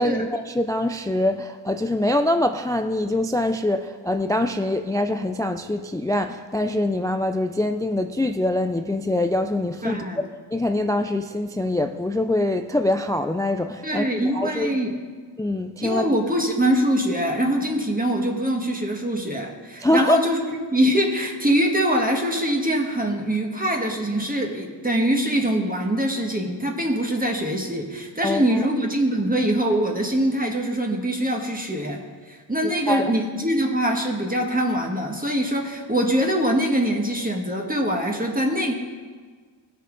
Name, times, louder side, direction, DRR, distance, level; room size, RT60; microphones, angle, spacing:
voice 1, 0.0-14.8 15.4-16.1 19.8-20.2 28.2-28.7 32.6-33.1, left 1 dB, 10° left, 7 dB, 0.3 m, -24 dB
voice 2, 9.8-10.2 13.8-14.9 15.8-32.0 32.3-38.7, right 1 dB, 20° right, 1 dB, 1.4 m, -23 dB
18.5 x 6.6 x 3.9 m, 1.5 s
wide cardioid pair, 75°, 48 cm